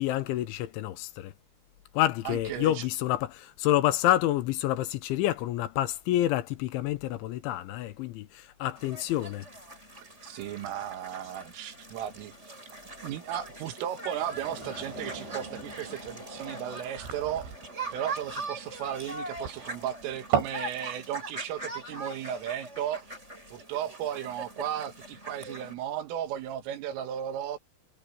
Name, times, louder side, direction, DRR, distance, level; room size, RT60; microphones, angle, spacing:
voice 1, 0.0-1.3 1.9-9.5, left 13 dB, 80° left, 3.2 m, -28 dB
voice 2, 2.3-2.8 10.0-12.5 13.0-17.5 17.9-23.2 23.5-27.6, right 10 dB, 80° right, 4.4 m, -35 dB
sound 1, 8.8-25.7, right 2 dB, 15° right, 7.9 m, -42 dB
sound 2, 14.2-20.6, right 9 dB, 65° right, 7.3 m, -36 dB
omnidirectional pair, 5.7 m